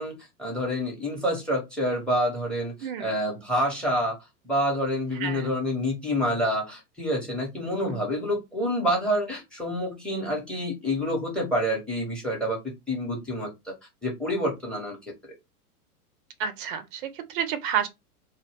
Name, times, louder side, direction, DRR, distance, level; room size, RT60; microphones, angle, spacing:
voice 1, 0.0-4.2 4.4-12.6 12.9-13.7 14.0-15.0 15.2-15.3, equal, ahead, 0.7 m, -28 dB
voice 2, 2.8-3.2 5.1-5.5 7.7-7.8 16.4-17.9, right 8 dB, 35° right, 0.5 m, -30 dB
2.2 x 2.1 x 3.2 m
figure-of-eight pair, 100°, 46 cm